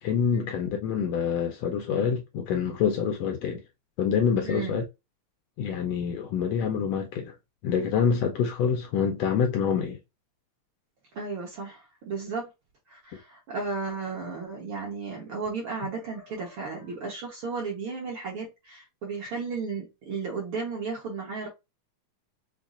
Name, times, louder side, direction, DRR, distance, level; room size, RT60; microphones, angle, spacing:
voice 1, 0.0-3.6 4.0-4.8 5.6-7.3 7.6-10.0, left 7 dB, 75° left, 1.6 m, -26 dB
voice 2, 4.4-4.8 11.1-12.5 12.9-21.5, right 4 dB, 60° right, 1.6 m, -34 dB
5.6 x 2.1 x 2.4 m
omnidirectional pair, 3.4 m